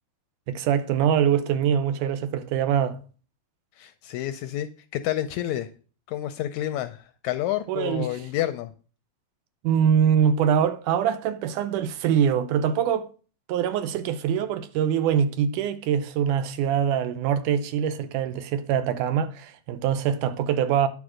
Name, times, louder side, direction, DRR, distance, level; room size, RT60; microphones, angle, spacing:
voice 1, 0.5-3.0 7.7-8.1 9.6-13.1 13.5-20.9, right 8 dB, 80° right, 2.2 m, -23 dB
voice 2, 3.8-5.7 6.1-8.7, left 13 dB, 80° left, 1.7 m, -29 dB
9.6 x 4.9 x 6.3 m
omnidirectional pair, 3.7 m